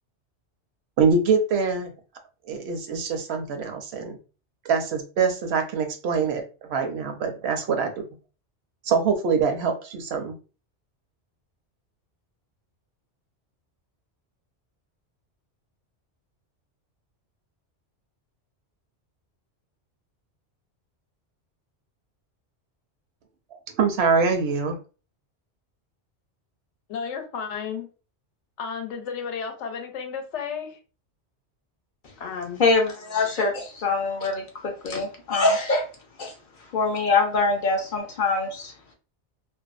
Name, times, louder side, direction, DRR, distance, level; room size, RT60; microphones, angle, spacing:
voice 1, 1.0-1.9 2.5-4.2 4.6-6.4 6.7-8.0 8.8-10.3 23.7-24.8, right 5 dB, 70° right, 0.8 m, -24 dB
voice 2, 26.9-27.9 28.6-30.8 32.2-32.6, left 6 dB, 85° left, 0.9 m, -33 dB
voice 3, 32.6-35.9 36.2-36.3 36.7-38.7, left 3 dB, 55° left, 0.6 m, -24 dB
2.6 x 2.2 x 2.3 m
omnidirectional pair, 1.2 m